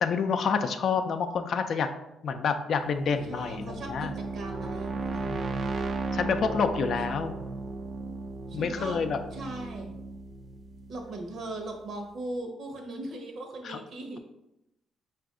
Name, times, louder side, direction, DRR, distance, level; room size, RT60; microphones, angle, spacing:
voice 1, 0.0-1.9 2.2-4.1 5.2-5.5 6.1-7.4 8.5-9.2 13.6-13.8, left 6 dB, 60° left, 7 dB, 0.4 m, -28 dB
sound 1, 2.9-11.7, right 3 dB, 50° right, 0.4 m, -36 dB
voice 2, 3.1-5.3 8.5-9.0 9.3-9.9 10.9-14.2, right 2 dB, 65° right, 3 dB, 0.9 m, -39 dB
4.9 x 2.5 x 3.6 m, 0.89 s
cardioid pair, 90°, 0 cm